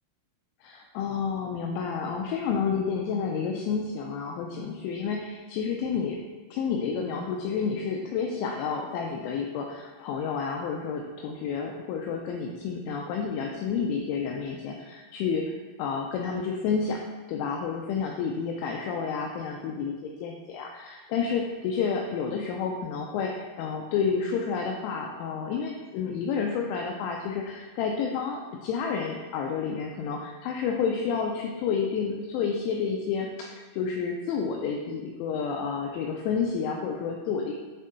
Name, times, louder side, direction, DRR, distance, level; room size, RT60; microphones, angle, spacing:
voice 1, 0.6-6.2 6.5-15.5 15.8-17.0 17.3-37.5, left 6 dB, 90° left, 1 dB, 2.7 m, -30 dB
8.7 x 3.6 x 3.9 m, 1.3 s
omnidirectional pair, 6.0 m